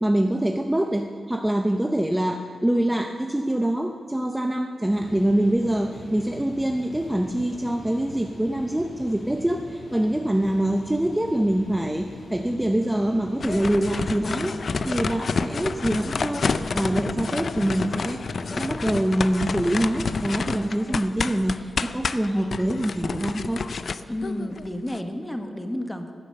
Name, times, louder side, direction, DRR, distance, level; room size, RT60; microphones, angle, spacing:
voice 1, 0.0-16.5 16.7-23.6, right 1 dB, 10° right, 4 dB, 0.7 m, -25 dB
sound 1, 4.9-19.2, left 1 dB, 90° left, 2.7 m, -42 dB
sound 2, 13.4-25.0, left 4 dB, 55° left, 0.5 m, -29 dB
voice 2, 24.1-26.1, left 1 dB, 10° left, 5 dB, 1.3 m, -31 dB
15.0 x 9.6 x 6.7 m, 2.2 s
wide cardioid pair, 95°, 0 cm